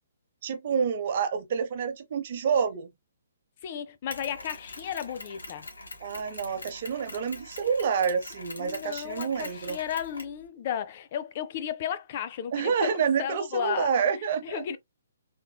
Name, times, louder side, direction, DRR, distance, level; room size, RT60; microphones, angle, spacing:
voice 1, 0.4-2.9 6.0-9.8 12.5-14.8, right 6 dB, 50° right, 0.7 m, -28 dB
voice 2, 3.6-5.7 8.6-13.9 14.4-14.8, left 9 dB, 45° left, 0.5 m, -34 dB
Mechanisms, 4.1-10.4, left 2 dB, 80° left, 1.0 m, -43 dB
3.5 x 3.0 x 2.2 m
figure-of-eight pair, 135°, 0 cm